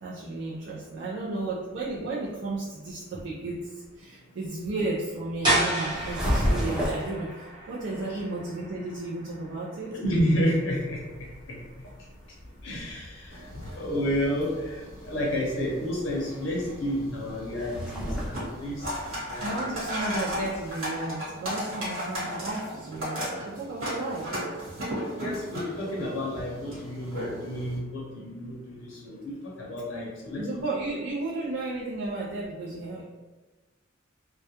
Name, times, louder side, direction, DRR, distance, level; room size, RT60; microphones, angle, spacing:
voice 1, 0.0-3.7 4.0-10.0 19.0-19.1 19.4-24.3 30.4-33.0, right 2 dB, 60° right, -6 dB, 0.4 m, -33 dB
sound 1, 5.4-11.1, right 1 dB, 20° right, 0.9 m, -32 dB
sound 2, 5.8-7.2 10.6-20.7, equal, 5° right, 0.5 m, -34 dB
voice 2, 9.9-11.0 11.5-11.6 12.6-13.3 13.8-14.7 15.1-18.8 19.3-19.6 25.2-29.3 29.6-30.5, equal, 65° left, -3 dB, 0.6 m, -30 dB
sound 3, 13.3-27.8, equal, 75° right, 1.3 m, -36 dB
2.3 x 2.1 x 2.8 m, 1.2 s
head